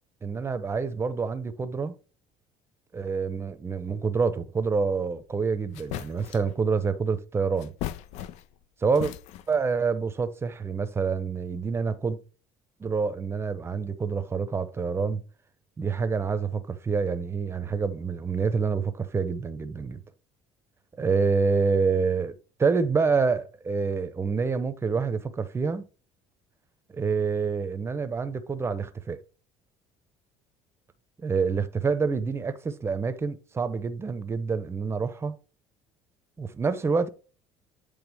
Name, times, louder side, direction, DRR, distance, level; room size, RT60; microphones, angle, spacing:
voice 1, 0.2-1.9 2.9-7.7 8.8-9.1 9.5-12.2 12.8-15.2 15.8-20.0 21.0-22.3 22.6-25.8 26.9-29.2 31.2-35.4 36.4-37.1, right 5 dB, 20° right, 0.8 m, -27 dB
sound 1, 5.3-5.4 5.7-6.6 7.6-8.6 8.9-9.6, left 13 dB, 70° left, 0.4 m, -37 dB
8.1 x 3.4 x 3.4 m
cardioid pair, 115°, 12 cm